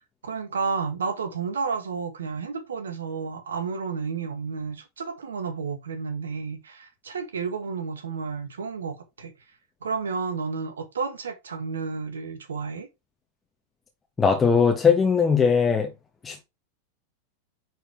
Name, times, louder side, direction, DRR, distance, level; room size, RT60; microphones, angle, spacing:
voice 1, 0.2-9.3 9.8-12.9, right 5 dB, 70° right, 1.6 m, -31 dB
voice 2, 14.2-15.9 16.2-16.4, left 6 dB, 15° left, 1.3 m, -20 dB
10.0 x 4.8 x 3.4 m
figure-of-eight pair, 90°, 0 cm